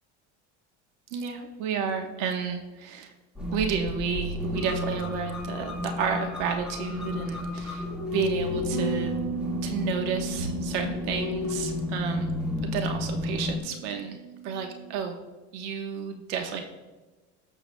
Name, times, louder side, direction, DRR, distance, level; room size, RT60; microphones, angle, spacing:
voice 1, 1.1-3.1 3.5-7.8 8.1-9.1 9.6-12.3 12.6-15.2 15.5-16.6, right 6 dB, 90° right, 4 dB, 1.2 m, -31 dB
sound 1, 3.4-13.6, left 2 dB, 5° right, 1.7 m, -32 dB
Bass guitar, 8.7-15.0, right 9 dB, 45° right, 0.4 m, -38 dB
20.0 x 6.9 x 2.2 m, 1.2 s
supercardioid pair, 135°, 35 cm